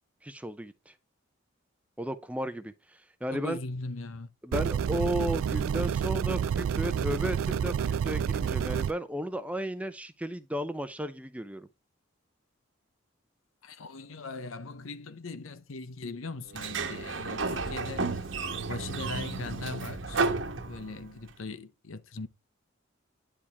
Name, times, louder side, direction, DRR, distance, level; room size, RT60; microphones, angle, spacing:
voice 1, 0.2-0.9 2.0-3.6 4.4-11.7, equal, 5° right, 0.5 m, -34 dB
voice 2, 3.3-4.3 13.6-18.3 18.7-20.3 20.6-22.3, left 3 dB, 90° left, 0.8 m, -40 dB
sound 1, 4.5-8.9, right 8 dB, 90° right, 0.3 m, -29 dB
Sliding door, 16.5-21.2, right 4 dB, 70° right, 1.2 m, -32 dB
9.9 x 4.9 x 3.5 m
head